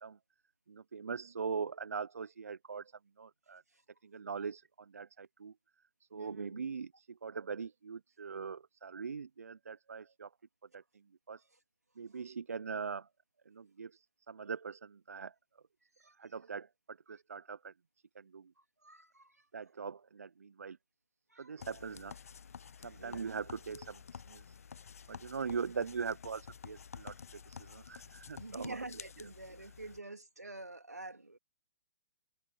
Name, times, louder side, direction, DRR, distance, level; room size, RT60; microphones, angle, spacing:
voice 1, 0.7-2.9 3.2-3.6 4.0-5.5 6.1-10.3 10.7-10.8 11.3-11.4 12.0-13.1 13.5-15.3 16.2-17.7 18.1-18.5 19.5-20.8 21.4-22.1 22.8-24.4 25.1-28.8, right 5 dB, 70° right, 0.9 m, -41 dB
voice 2, 6.1-6.6 16.0-16.1 18.6-19.4 21.3-21.7 22.9-23.4 28.4-31.4, right 2 dB, 90° right, 2.9 m, -47 dB
sound 1, 21.6-30.0, left 7 dB, 65° left, 0.7 m, -51 dB
figure-of-eight pair, 120°, 8 cm